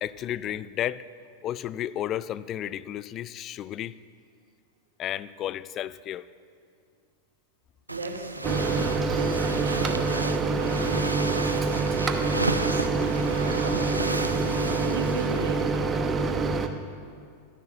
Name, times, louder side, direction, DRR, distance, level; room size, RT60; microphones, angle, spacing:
voice 1, 0.0-1.0 1.4-4.0 5.0-6.3, left 11 dB, 30° left, 17 dB, 0.4 m, -32 dB
voice 2, 7.9-11.8 12.3-13.2 14.8-16.1, right 3 dB, 65° right, 2 dB, 2.0 m, -37 dB
sound 1, 7.9-15.7, right 2 dB, 85° right, 0.6 m, -33 dB
Microwave oven, 8.4-16.7, right 4 dB, 20° right, 0.9 m, -26 dB
13.0 x 10.5 x 7.6 m, 2.2 s
figure-of-eight pair, 90°, 0 cm